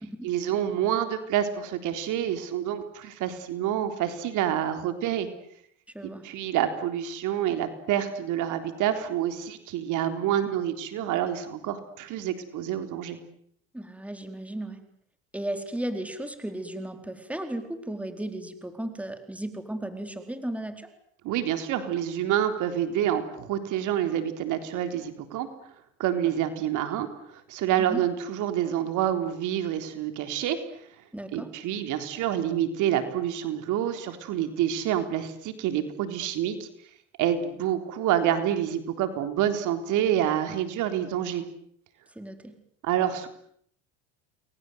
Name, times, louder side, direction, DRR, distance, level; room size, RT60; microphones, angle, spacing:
voice 1, 0.2-5.3 6.2-13.2 21.2-25.5 26.0-30.6 31.3-36.7 37.2-41.4 42.8-43.3, right 10 dB, 65° right, 8 dB, 3.9 m, -27 dB
voice 2, 5.9-6.2 13.7-14.8 15.3-20.9 27.8-28.1 31.1-31.5 42.2-42.6, right 1 dB, 5° right, 7 dB, 4.3 m, -35 dB
29.5 x 22.0 x 8.1 m, 0.68 s
supercardioid pair, 100°, 33 cm